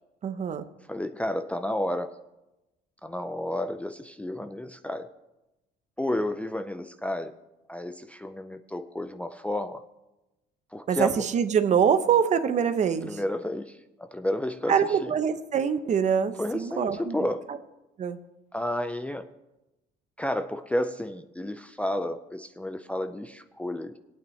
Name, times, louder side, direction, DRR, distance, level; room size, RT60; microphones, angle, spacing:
voice 1, 0.2-0.6 10.9-13.2 14.7-17.3 18.0-18.2, right 7 dB, 45° right, 11 dB, 0.8 m, -24 dB
voice 2, 0.9-2.1 3.0-5.1 6.0-7.3 7.7-9.8 10.7-11.2 13.0-15.1 16.4-17.5 18.5-19.3 20.2-24.0, left 1 dB, 10° left, 8 dB, 0.4 m, -31 dB
19.0 x 8.8 x 3.2 m, 0.99 s
cardioid pair, 110°, 17 cm